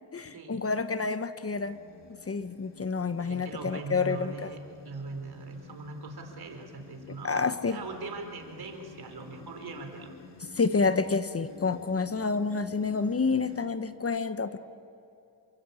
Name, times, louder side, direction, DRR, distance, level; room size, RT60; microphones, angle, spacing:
voice 1, 0.1-1.8 2.3-4.5 7.2-7.8 10.5-14.6, left 4 dB, 30° left, 11 dB, 1.2 m, -28 dB
sound 1, 1.5-13.6, left 4 dB, 75° left, 3.8 m, -51 dB
voice 2, 3.2-10.2, right 3 dB, 60° right, 5 dB, 4.3 m, -41 dB
28.5 x 23.5 x 8.6 m, 2.6 s
cardioid pair, 80°, 43 cm